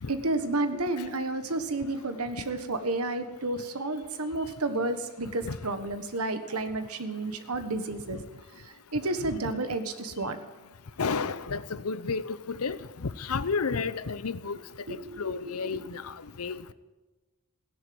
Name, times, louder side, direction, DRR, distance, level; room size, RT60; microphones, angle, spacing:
voice 1, 0.1-8.2 8.6-10.4 14.9-15.9, right 2 dB, 80° right, 1.5 m, -31 dB
voice 2, 11.0-14.6 14.9-16.7, left 5 dB, 75° left, 0.7 m, -32 dB
16.0 x 10.5 x 7.8 m
head